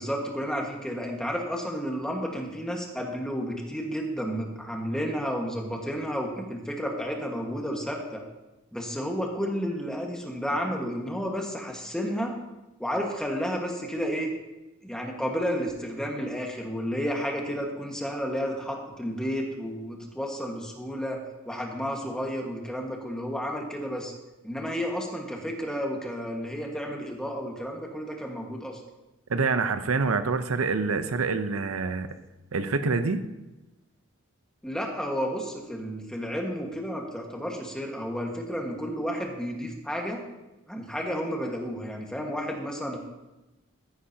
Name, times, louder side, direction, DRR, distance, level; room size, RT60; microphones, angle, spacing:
voice 1, 0.0-8.2 8.7-12.3 12.8-14.3 14.8-21.2 21.4-24.1 24.4-28.8 34.6-40.2 40.7-43.0, equal, 5° left, 0 dB, 1.6 m, -31 dB
voice 2, 29.3-32.1 32.5-33.2, right 4 dB, 85° right, 10 dB, 0.7 m, -26 dB
14.5 x 9.8 x 2.9 m, 1.0 s
head